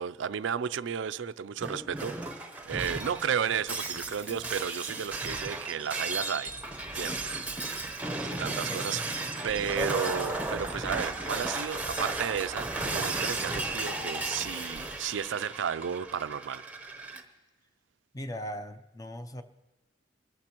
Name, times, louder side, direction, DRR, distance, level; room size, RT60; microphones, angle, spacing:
voice 1, 0.0-6.5 6.9-7.3 8.3-9.0 9.4-16.6, right 7 dB, 75° right, 0.4 m, -33 dB
Shatter, 1.6-17.2, right 2 dB, 10° right, 0.8 m, -35 dB
voice 2, 8.6-9.1 9.8-9.9 18.1-19.4, left 1 dB, 20° left, 0.5 m, -38 dB
24.5 x 15.0 x 3.0 m
head